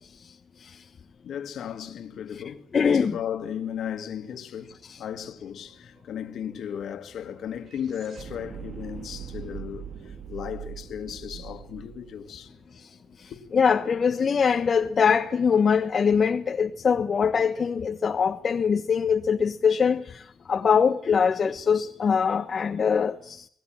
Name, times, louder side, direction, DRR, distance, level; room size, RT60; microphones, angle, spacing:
voice 1, 1.2-12.5 13.3-13.4, left 9 dB, 70° left, 2.1 m, -36 dB
voice 2, 2.7-3.2 4.9-5.0 12.8-12.9 13.2-23.5, left 6 dB, 45° left, 1.2 m, -23 dB
sound 1, 4.8-4.9 5.1-13.3, right 9 dB, 55° right, 1.7 m, -43 dB
24.5 x 18.5 x 7.6 m
cardioid pair, 90°, 0 cm